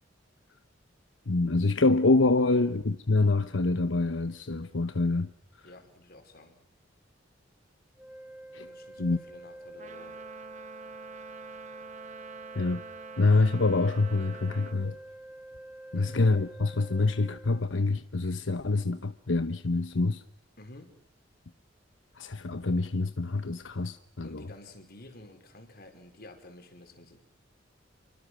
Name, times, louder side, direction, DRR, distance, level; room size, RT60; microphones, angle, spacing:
voice 1, 1.3-5.3 8.5-8.7 9.0-9.2 12.5-12.8 13.2-15.0 15.9-20.2 22.2-24.5, left 3 dB, 90° left, 1.0 m, -26 dB
voice 2, 2.4-2.7 5.6-6.6 8.5-10.2 15.9-16.2 20.6-20.9 24.2-27.2, left 1 dB, 55° left, 5.0 m, -51 dB
sound 1, 8.0-17.6, right 1 dB, 5° right, 1.4 m, -47 dB
Trumpet, 9.8-14.8, right 5 dB, 40° right, 1.3 m, -46 dB
29.0 x 24.5 x 6.3 m
head